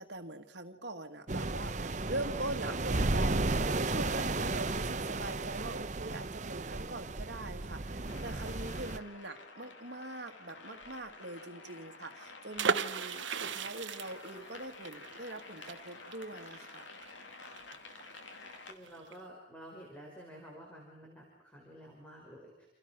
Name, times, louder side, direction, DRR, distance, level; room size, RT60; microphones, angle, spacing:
voice 1, 0.0-16.9, right 2 dB, 60° right, 5 dB, 2.0 m, -42 dB
sound 1, 1.3-9.0, right 2 dB, 40° right, 0.9 m, -34 dB
sound 2, 8.1-18.7, left 3 dB, 75° left, 2.7 m, -50 dB
sound 3, 12.6-18.2 18.5-18.6 18.9-19.2, right 5 dB, 75° right, 1.0 m, -36 dB
voice 2, 18.7-22.5, equal, 10° left, -2 dB, 5.1 m, -51 dB
28.5 x 28.0 x 6.1 m, 0.97 s
head